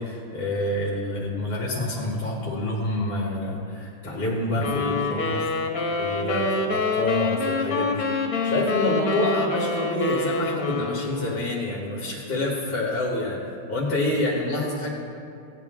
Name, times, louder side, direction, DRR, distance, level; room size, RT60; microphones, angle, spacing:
voice 1, 0.0-5.5 6.0-8.1 8.4-13.4 13.7-14.9, left 2 dB, 35° left, -4 dB, 1.4 m, -27 dB
sound 1, 4.6-11.6, left 3 dB, 55° left, 1.4 m, -26 dB
16.0 x 9.2 x 3.6 m, 2.5 s
omnidirectional pair, 1.8 m